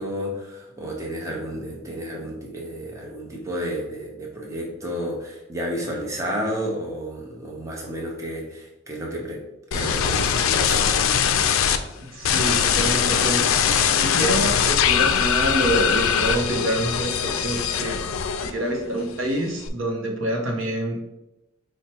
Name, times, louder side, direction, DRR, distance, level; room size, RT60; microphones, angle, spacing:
voice 1, 0.0-9.4 9.7-10.9, equal, 15° right, -2 dB, 0.7 m, -31 dB
sound 1, 9.7-11.8 12.2-18.8 19.1-19.7, left 7 dB, 75° left, 0.3 m, -21 dB
voice 2, 12.0-13.5 14.0-18.0 18.4-21.0, right 1 dB, 70° right, 1 dB, 0.8 m, -26 dB
4.6 x 2.1 x 4.3 m, 0.91 s
head